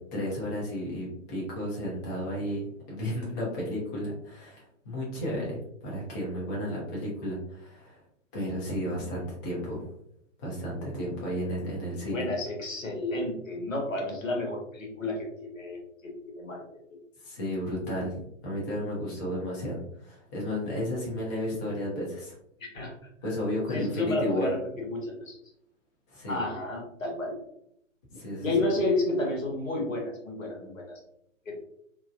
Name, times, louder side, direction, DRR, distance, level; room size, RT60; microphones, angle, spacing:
voice 1, 0.1-8.0 8.3-9.9 10.4-12.2 17.2-22.3 23.2-24.5 26.1-26.4 28.1-28.5, equal, 15° left, -4 dB, 0.4 m, -33 dB
voice 2, 12.1-15.3 15.5-16.8 22.7-22.9 23.7-25.4 26.3-27.4 28.4-31.0 31.5-31.6, left 2 dB, 80° left, 0 dB, 1.0 m, -31 dB
2.7 x 2.1 x 2.4 m, 0.73 s
figure-of-eight pair, 120°, 39 cm